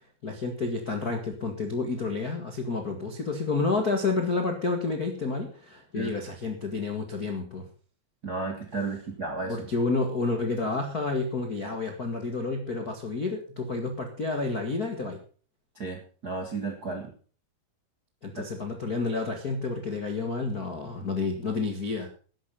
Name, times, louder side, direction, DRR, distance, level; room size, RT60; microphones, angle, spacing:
voice 1, 0.2-7.6 9.5-15.2 18.2-22.1, left 3 dB, 75° left, 4 dB, 0.8 m, -30 dB
voice 2, 8.2-9.7 15.7-17.1 18.4-18.5, right 3 dB, 60° right, 2 dB, 1.0 m, -33 dB
12.5 x 10.5 x 5.7 m, 0.40 s
omnidirectional pair, 5.0 m